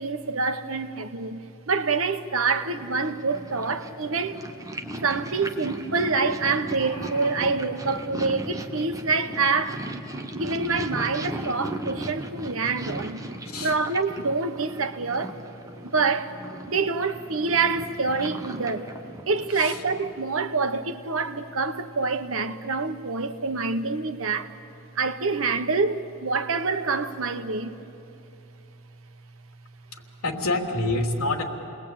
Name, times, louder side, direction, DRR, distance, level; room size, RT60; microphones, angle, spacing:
voice 1, 0.0-1.4 1.7-4.4 5.0-9.8 10.3-13.2 13.6-15.3 15.8-16.3 16.7-18.9 19.3-24.5 25.0-27.8, right 4 dB, 70° right, 1.2 m, -26 dB
Purr, 2.6-20.2, right 1 dB, 15° right, 1.1 m, -37 dB
sound 1, 6.7-7.6 8.5-8.6 9.0-9.1, right 1 dB, 25° left, 8.0 m, -42 dB
voice 2, 13.4-13.8 19.5-20.0 29.9-31.4, left 2 dB, 80° left, 3.3 m, -28 dB
29.5 x 20.5 x 8.8 m
head